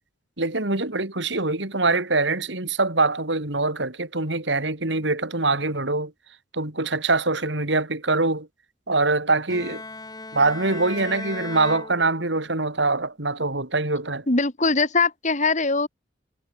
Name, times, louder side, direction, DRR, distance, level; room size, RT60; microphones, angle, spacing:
voice 1, 0.4-6.1 6.5-8.5 8.9-9.8 10.3-14.2, right 3 dB, 70° right, 3.1 m, -24 dB
Bowed string instrument, 9.5-12.6, left 2 dB, 20° left, 2.9 m, -37 dB
voice 2, 14.3-15.9, left 3 dB, 40° left, 2.5 m, -21 dB
head